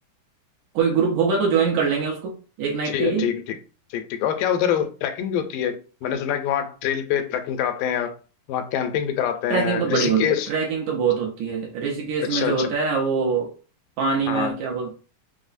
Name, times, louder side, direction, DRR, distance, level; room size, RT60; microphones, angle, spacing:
voice 1, 0.7-3.3 9.5-13.5 14.0-14.9, right 5 dB, 75° right, 2.1 m, -23 dB
voice 2, 2.9-3.6 3.9-8.1 8.5-10.5 12.3-12.7 14.3-14.5, left 9 dB, 90° left, 2.2 m, -25 dB
5.4 x 2.0 x 2.5 m
omnidirectional pair, 3.7 m